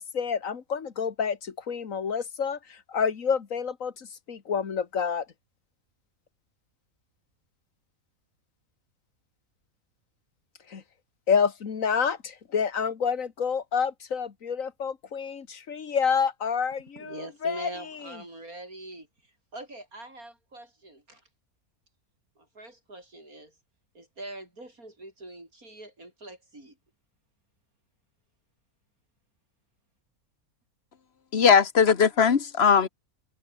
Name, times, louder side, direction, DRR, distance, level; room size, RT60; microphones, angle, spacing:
voice 1, 0.0-5.3 10.7-10.8 11.3-17.7, left 6 dB, 65° left, 2.0 m, -28 dB
voice 2, 17.0-21.2 22.4-23.5 23.9-26.8, right 2 dB, 85° right, 8.3 m, -43 dB
voice 3, 31.3-32.9, left 6 dB, 45° left, 1.6 m, -19 dB
omnidirectional pair, 1.5 m